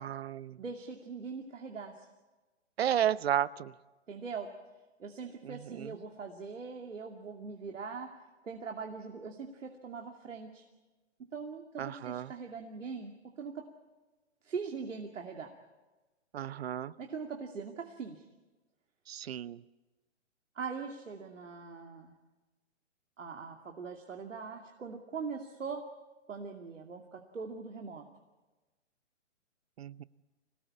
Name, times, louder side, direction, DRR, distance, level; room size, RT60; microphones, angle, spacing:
voice 1, 0.0-0.6 2.8-3.7 5.4-5.9 11.8-12.3 16.3-16.9 19.1-19.6 29.8-30.0, right 10 dB, 55° right, 19 dB, 0.8 m, -33 dB
voice 2, 0.6-2.1 4.1-4.5 5.0-8.2 8.4-10.6 11.3-13.7 14.4-15.5 17.0-18.2 20.5-22.1 23.2-25.9 26.3-28.1, right 5 dB, 85° right, 2 dB, 2.6 m, -41 dB
26.0 x 19.0 x 8.7 m, 1.2 s
hypercardioid pair, 150°, 37 cm